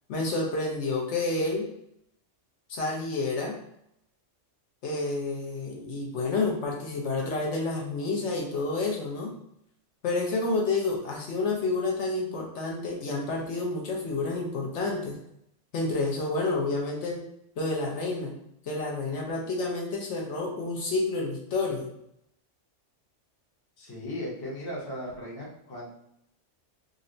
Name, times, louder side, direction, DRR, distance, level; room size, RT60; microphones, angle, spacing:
voice 1, 0.1-1.7 2.7-3.6 4.8-9.3 10.0-15.2 15.7-17.2 17.6-18.3 18.6-21.9, left 3 dB, 70° left, -1 dB, 0.9 m, -29 dB
voice 2, 23.8-25.9, left 1 dB, 25° left, -5 dB, 0.7 m, -37 dB
3.7 x 2.1 x 2.5 m, 0.77 s
omnidirectional pair, 1.3 m